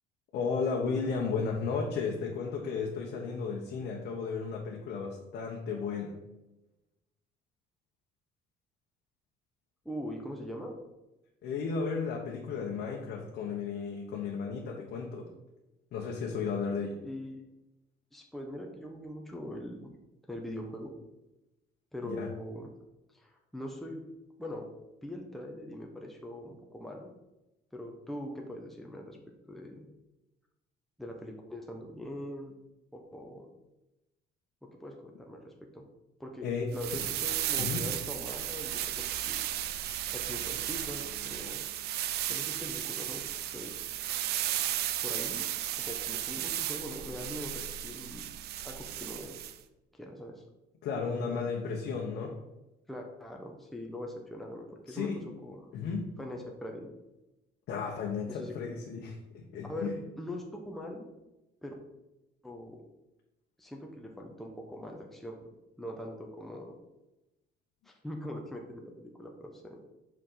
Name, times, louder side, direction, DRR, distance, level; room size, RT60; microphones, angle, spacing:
voice 1, 0.3-6.2 11.4-15.3 15.9-17.0 22.0-22.3 36.4-36.7 37.6-37.8 50.8-52.4 54.9-55.2 55.7-56.2 57.7-60.0, left 5 dB, 70° left, -1 dB, 1.1 m, -34 dB
voice 2, 9.8-10.7 17.0-17.4 18.1-19.9 20.3-20.9 21.9-22.7 23.1-24.0 24.4-24.7 25.0-27.1 27.7-29.2 29.5-29.9 31.0-32.5 32.9-33.5 34.6-35.8 36.2-39.4 40.1-41.6 42.3-43.3 43.5-43.8 45.0-45.4 45.8-48.2 48.6-49.4 49.9-50.4 52.9-55.1 55.4-55.7 56.2-56.9 58.3-58.5 59.7-61.1 61.6-61.7 62.4-62.8 63.6-65.5 65.8-66.7 67.8-68.9 69.2-69.8, left 1 dB, ahead, 0 dB, 1.0 m, -42 dB
sound 1, 36.7-49.6, right 12 dB, 70° right, 0.6 m, -34 dB
5.7 x 5.1 x 5.6 m, 0.98 s
cardioid pair, 110°, 17 cm